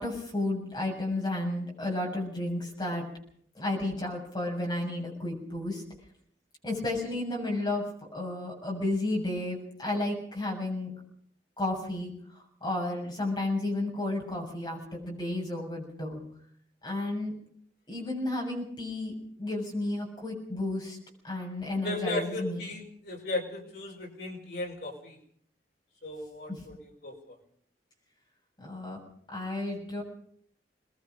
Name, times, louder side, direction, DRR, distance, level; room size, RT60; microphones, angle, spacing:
voice 1, 0.0-3.0 3.6-5.8 6.6-7.8 8.1-10.9 11.6-12.1 12.6-16.2 16.8-17.3 17.9-19.1 19.4-21.0 21.2-22.6 28.6-29.0 29.3-30.0, left 2 dB, 25° left, -1 dB, 7.1 m, -32 dB
voice 2, 21.8-25.2 26.0-27.4, left 2 dB, 65° left, 0 dB, 5.4 m, -36 dB
23.5 x 21.0 x 5.4 m, 0.63 s
head